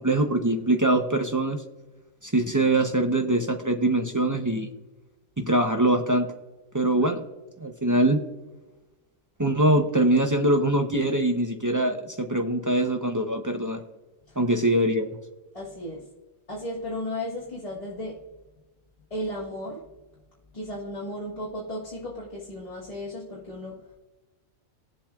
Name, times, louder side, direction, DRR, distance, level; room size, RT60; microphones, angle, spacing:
voice 1, 0.0-1.6 2.2-4.7 5.5-6.3 6.7-7.2 7.6-8.2 9.4-13.8 14.4-15.1, right 1 dB, 25° right, 4 dB, 0.4 m, -23 dB
voice 2, 15.5-16.0 16.5-18.2 19.1-19.8 20.5-24.0, left 1 dB, 25° left, -7 dB, 1.5 m, -35 dB
20.0 x 7.4 x 2.3 m, 1.1 s
omnidirectional pair, 1.4 m